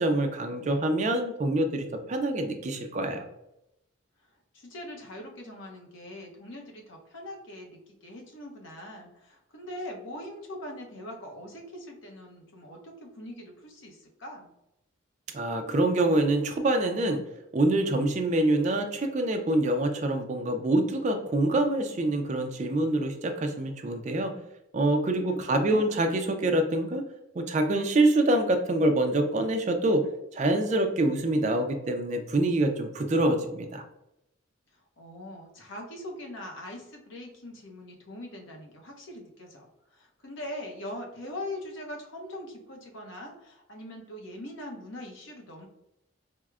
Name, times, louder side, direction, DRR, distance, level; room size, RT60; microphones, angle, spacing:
voice 1, 0.0-3.3 15.3-17.2 17.5-24.3 24.7-27.0 27.3-30.0 30.3-33.8, right 1 dB, 35° right, 6 dB, 0.3 m, -25 dB
voice 2, 4.5-14.5 25.1-25.9 34.7-45.7, left 1 dB, 65° left, 1 dB, 0.7 m, -42 dB
4.4 x 2.0 x 2.3 m, 0.85 s
head